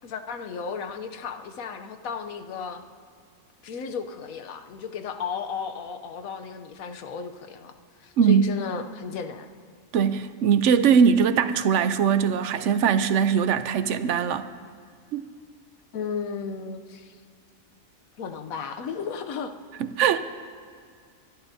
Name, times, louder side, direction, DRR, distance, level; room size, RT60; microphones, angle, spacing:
voice 1, 0.0-2.8 3.6-7.7 8.0-9.5 15.9-17.2 18.2-19.5, left 6 dB, 80° left, 7 dB, 1.2 m, -34 dB
voice 2, 8.2-8.5 9.9-14.5 15.1-15.3 19.8-20.2, right 7 dB, 70° right, 12 dB, 0.9 m, -21 dB
24.0 x 12.5 x 2.7 m, 2.1 s
omnidirectional pair, 1.4 m